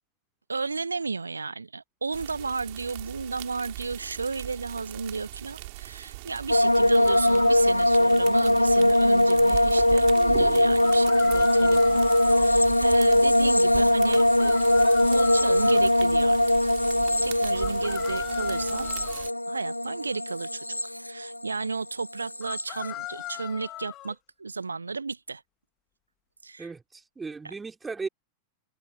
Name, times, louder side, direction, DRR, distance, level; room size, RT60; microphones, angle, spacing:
voice 1, 0.5-14.6 15.1-16.7 17.2-18.9 19.5-25.4 26.4-26.7 27.4-27.5, right 4 dB, 80° right, 1.2 m, -33 dB
sound 1, 2.1-19.3, right 23 dB, 50° right, 3.4 m, -40 dB
sound 2, 6.5-21.7 22.0-22.6, left 1 dB, 85° left, 0.7 m, -21 dB
sound 3, 7.1-7.7 10.8-12.5 14.1-15.9 17.6-19.3 22.4-24.1, left 15 dB, 35° left, 2.5 m, -40 dB
voice 2, 26.6-28.1, right 4 dB, 15° right, 4.7 m, -36 dB
figure-of-eight pair, 90°, 0 cm